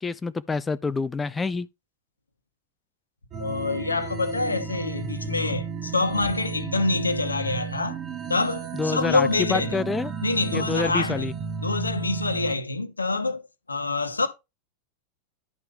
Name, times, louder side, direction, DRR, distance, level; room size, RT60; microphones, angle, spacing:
voice 1, 0.0-1.7 8.7-10.1 10.5-11.3, left 4 dB, 15° left, 0.4 m, -27 dB
sound 1, 3.3-12.5, right 5 dB, 25° right, 1.4 m, -33 dB
voice 2, 3.4-8.0 8.3-9.8 10.2-11.3 11.6-13.4 13.7-14.3, left 3 dB, 80° left, 1.1 m, -26 dB
10.5 x 5.4 x 3.5 m
figure-of-eight pair, 90°, 0 cm